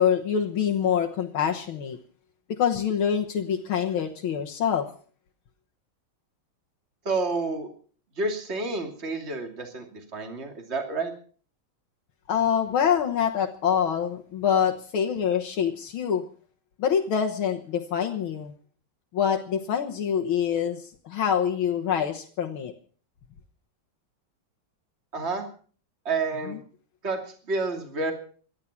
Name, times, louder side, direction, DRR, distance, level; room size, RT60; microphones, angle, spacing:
voice 1, 0.0-2.0 2.6-4.9 12.3-16.2 16.8-18.5 19.1-22.7 26.5-26.6, left 8 dB, 85° left, 2 dB, 2.1 m, -25 dB
voice 2, 7.0-7.7 8.2-11.1 25.1-25.4 26.0-26.6 27.0-28.1, right 3 dB, 30° right, 4 dB, 2.9 m, -29 dB
18.0 x 12.5 x 5.9 m, 0.44 s
omnidirectional pair, 2.2 m